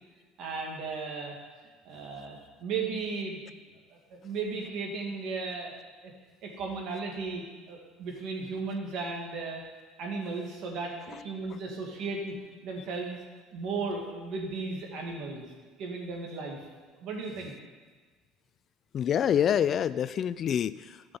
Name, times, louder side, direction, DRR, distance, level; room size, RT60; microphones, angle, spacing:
voice 1, 0.4-1.4 1.8-3.4 4.2-5.7 6.0-6.1 6.4-9.6 10.0-12.3 12.6-13.2 13.5-15.5 15.8-16.6 16.9-17.5, right 4 dB, 60° right, 0 dB, 2.4 m, -35 dB
voice 2, 18.9-21.2, left 9 dB, 45° left, 16 dB, 0.3 m, -27 dB
12.5 x 6.2 x 5.4 m, 1.4 s
supercardioid pair, 95°, 0 cm